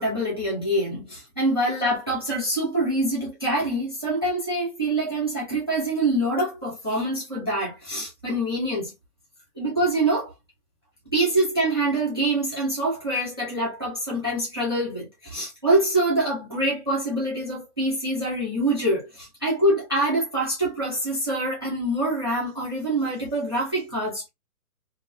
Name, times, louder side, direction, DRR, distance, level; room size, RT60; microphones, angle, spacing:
voice 1, 0.0-8.9 9.6-10.3 11.1-24.3, right 1 dB, 20° right, 0.4 m, -25 dB
2.2 x 2.1 x 2.7 m
hypercardioid pair, 140°, 46 cm